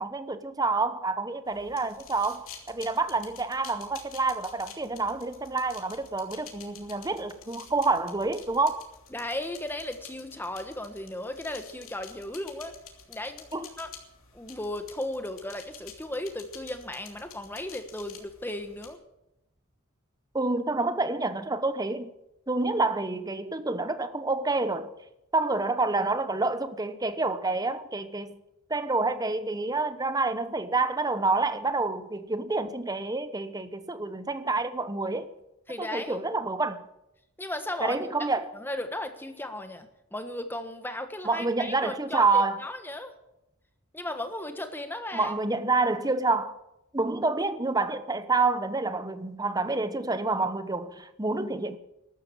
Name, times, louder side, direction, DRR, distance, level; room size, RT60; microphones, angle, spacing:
voice 1, 0.0-8.8 13.5-13.7 20.3-22.1 22.5-24.9 25.3-28.4 28.7-35.3 35.8-36.8 37.8-38.5 41.2-42.6 45.1-46.6 46.9-51.8, right 3 dB, 15° right, 0.9 m, -28 dB
sound 1, 1.5-18.9, left 7 dB, 70° left, 3.0 m, -50 dB
voice 2, 9.1-12.7 13.1-13.9 14.3-19.0 35.7-36.2 37.4-38.0 38.5-43.1 43.9-45.3, left 1 dB, 10° left, 1.4 m, -36 dB
13.5 x 12.0 x 7.3 m
head